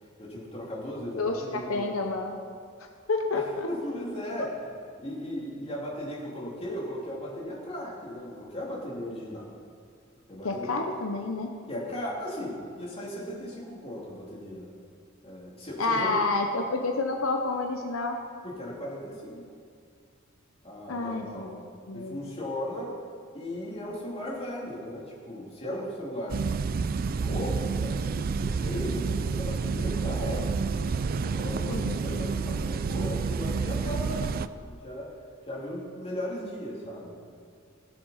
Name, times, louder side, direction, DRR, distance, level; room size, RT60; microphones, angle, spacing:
voice 1, 0.2-1.9 3.3-4.5 5.0-9.5 10.3-10.8 11.7-14.7 15.2-16.2 18.4-19.4 20.6-21.5 21.9-23.0 23.3-26.4 27.1-30.7 31.1-35.1 35.5-37.1, equal, 30° left, -4 dB, 2.9 m, -37 dB
voice 2, 1.2-2.5 3.1-3.7 4.4-4.5 10.4-11.5 15.8-18.2 20.9-22.3 31.7-32.0, left 3 dB, 75° left, 3 dB, 0.9 m, -29 dB
sound 1, 26.3-34.5, right 5 dB, 45° right, 0.4 m, -29 dB
18.5 x 6.9 x 5.7 m, 2.2 s
head